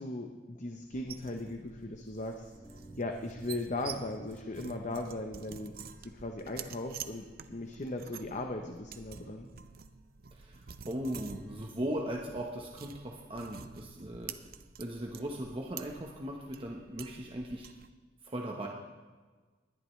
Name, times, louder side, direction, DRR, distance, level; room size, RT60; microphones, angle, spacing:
voice 1, 0.0-2.5 3.0-5.7 6.1-9.5, left 2 dB, 45° left, 4 dB, 0.8 m, -38 dB
sound 1, 0.9-17.9, right 7 dB, 60° right, 0.6 m, -49 dB
sound 2, 2.0-2.1 2.5-7.7, right 1 dB, 30° left, 2.3 m, -59 dB
voice 2, 10.3-14.3 14.8-17.7 18.2-18.7, right 1 dB, 30° right, 0 dB, 1.1 m, -38 dB
20.5 x 11.0 x 3.2 m, 1.4 s
head